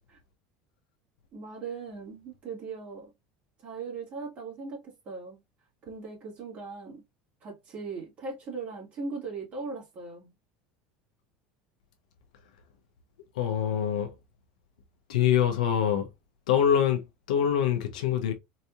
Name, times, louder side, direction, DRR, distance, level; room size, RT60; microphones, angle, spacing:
voice 1, 1.3-3.1 3.6-5.4 5.8-7.0 7.4-10.3, right 4 dB, 40° right, 2.0 m, -39 dB
voice 2, 13.3-14.1 15.1-16.1 16.5-18.3, left 9 dB, 90° left, 0.7 m, -25 dB
4.0 x 2.7 x 2.3 m
supercardioid pair, 110°, 4 cm